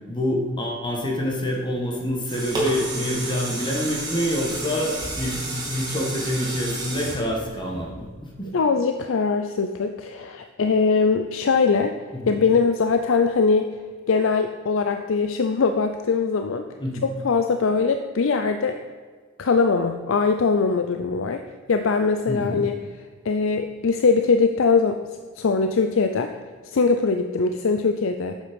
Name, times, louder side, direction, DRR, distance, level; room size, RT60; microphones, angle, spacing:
voice 1, 0.1-8.5 12.1-12.3 16.8-17.1 22.3-22.6, left 1 dB, 25° left, -1 dB, 1.5 m, -27 dB
sound 1, 2.0-8.3 8.8-8.9, right 2 dB, 20° right, 2.2 m, -31 dB
voice 2, 8.5-11.9 12.3-13.7 14.1-16.6 17.0-18.8 19.4-21.4 21.7-22.7 23.2-25.0 25.4-26.3 26.6-28.4, left 4 dB, 75° left, 7 dB, 0.5 m, -21 dB
8.4 x 7.3 x 5.2 m, 1.5 s
head